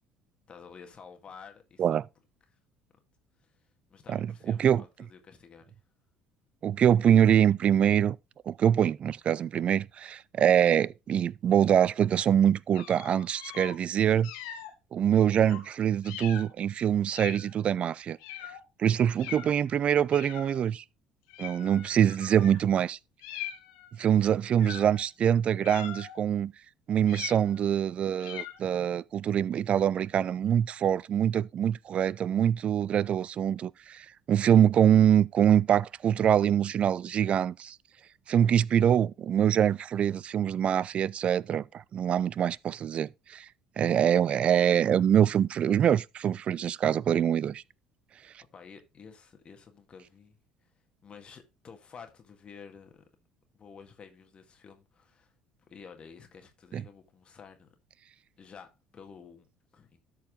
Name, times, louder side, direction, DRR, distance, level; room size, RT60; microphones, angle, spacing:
voice 1, 0.5-2.0 3.4-3.6 3.9-5.8 24.2-24.4 48.5-50.4 50.6-50.7 51.0-53.0 53.5-55.3 55.7-57.7 58.4-60.0, left 6 dB, 40° left, 1.8 m, -51 dB
voice 2, 4.1-4.8 6.6-8.2 8.5-14.3 14.9-18.2 18.8-20.8 21.4-23.0 24.0-26.5 26.9-37.8 38.3-43.5 43.8-47.6 56.7-56.8, right 9 dB, 45° right, 0.3 m, -24 dB
sound 1, 12.7-13.8 14.2-14.7 15.5-15.7 16.0-16.5 17.1-17.5 18.2-18.6 19.2-19.5 20.1-20.7 21.3-22.6 23.2-23.9 24.6-25.0 25.6-26.2 27.1-27.7 28.2-28.7, left 11 dB, 75° left, 1.0 m, -42 dB
12.5 x 4.6 x 3.7 m
hypercardioid pair, 60°, 3 cm